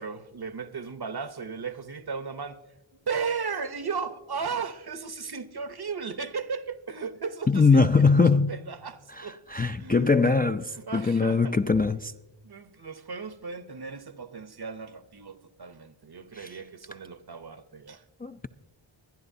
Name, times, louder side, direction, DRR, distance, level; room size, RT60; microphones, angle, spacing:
voice 1, 0.0-2.6 3.1-8.1 8.5-10.4 10.7-11.6 12.4-18.0, right 5 dB, 55° right, 0.8 m, -36 dB
voice 2, 7.5-8.5 9.2-10.6 10.9-12.1 16.3-16.5 18.2-18.5, left 4 dB, 20° left, 0.3 m, -22 dB
23.5 x 10.5 x 2.7 m
wide cardioid pair, 50°, 48 cm